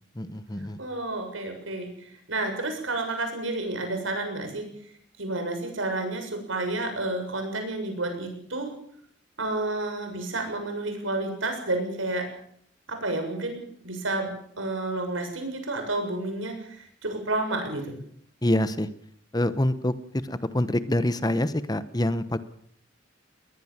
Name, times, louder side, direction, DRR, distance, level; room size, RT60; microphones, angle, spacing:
voice 1, 0.2-0.8 18.4-18.9 19.3-22.4, left 1 dB, 20° left, 13 dB, 1.0 m, -26 dB
voice 2, 0.8-4.7 5.2-8.7 9.4-12.3 12.9-14.3 14.6-18.0, right 2 dB, 90° right, 5 dB, 7.1 m, -30 dB
21.0 x 20.5 x 7.4 m, 0.65 s
head